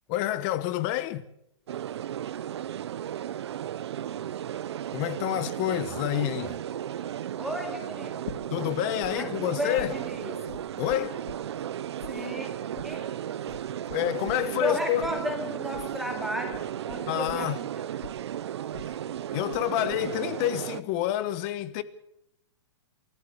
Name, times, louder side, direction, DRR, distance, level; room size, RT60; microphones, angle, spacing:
voice 1, 0.1-1.2 4.9-6.5 8.5-9.9 10.8-11.2 13.9-15.1 17.1-17.6 19.3-21.8, left 14 dB, 30° left, 1.1 m, -28 dB
sound 1, 1.7-20.8, right 10 dB, 70° right, 0.8 m, -35 dB
voice 2, 7.4-8.2 9.1-10.4 12.1-12.5 12.8-13.1 14.4-18.0, left 1 dB, ahead, 2.4 m, -34 dB
sound 2, 8.2-9.1 9.4-11.7 12.0-19.6 19.9-20.4, left 7 dB, 85° left, 2.9 m, -44 dB
24.0 x 14.5 x 8.1 m
hypercardioid pair, 165°, 15 cm